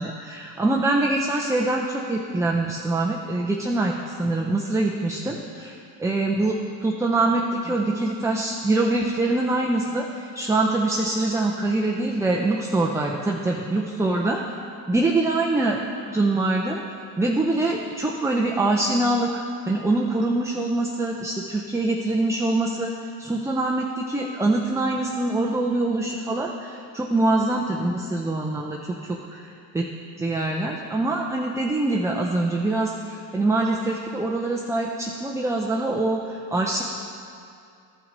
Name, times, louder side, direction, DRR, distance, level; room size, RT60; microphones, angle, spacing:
voice 1, 0.0-6.5 6.8-14.4 14.9-15.8 16.1-16.8 17.2-22.9 23.2-29.2 29.7-29.8 30.2-36.8, right 2 dB, 5° right, 0 dB, 0.5 m, -24 dB
13.0 x 5.7 x 4.0 m, 2.4 s
supercardioid pair, 80°, 50 cm